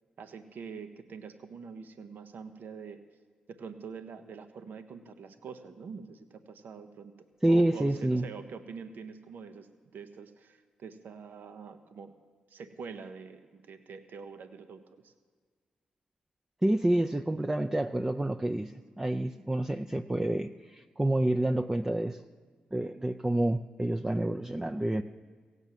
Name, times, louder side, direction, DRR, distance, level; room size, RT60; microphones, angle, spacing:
voice 1, 0.2-3.0 3.5-7.1 7.5-9.7 9.9-12.1 12.5-15.1, right 5 dB, 75° right, 8 dB, 0.9 m, -45 dB
voice 2, 7.4-8.3 16.6-18.7 19.0-22.2 22.7-25.0, right 1 dB, 15° right, 5 dB, 0.5 m, -28 dB
16.5 x 8.2 x 7.4 m, 1.5 s
supercardioid pair, 45°, 3 cm